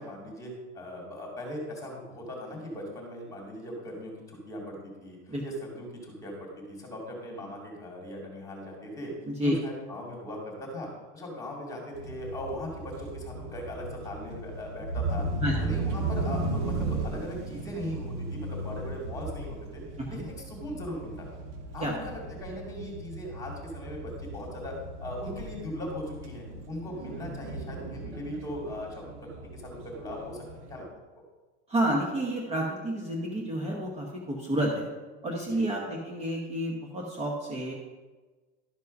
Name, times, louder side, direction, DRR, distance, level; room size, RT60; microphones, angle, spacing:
voice 1, 0.0-9.1 9.4-15.3 15.6-19.8 20.1-21.3 21.7-29.1 29.5-30.9 35.5-35.6, equal, 10° left, -1 dB, 2.4 m, -39 dB
sound 1, 11.9-30.8, right 2 dB, 90° right, 1.9 m, -36 dB
voice 2, 31.7-34.9 35.2-37.7, right 1 dB, 15° right, -1 dB, 1.1 m, -30 dB
12.0 x 5.3 x 5.3 m, 1.3 s
supercardioid pair, 155°, 35 cm